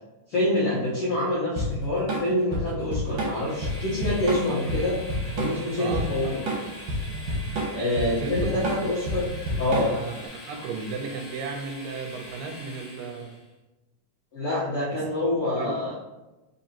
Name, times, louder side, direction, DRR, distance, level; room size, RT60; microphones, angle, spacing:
voice 1, 0.3-5.0 5.3-6.4 7.7-9.3 9.6-9.9 14.3-15.9, left 1 dB, 85° left, -7 dB, 1.2 m, -26 dB
Drum kit / Drum, 1.6-10.2, equal, 65° right, 2.0 m, -29 dB
Train, 3.0-13.5, left 1 dB, 50° left, 1.4 m, -43 dB
voice 2, 5.8-6.4 8.2-8.8 9.7-13.3 15.6-15.9, right 4 dB, 85° right, 4 dB, 2.2 m, -35 dB
4.6 x 3.8 x 2.8 m, 1.1 s
omnidirectional pair, 3.9 m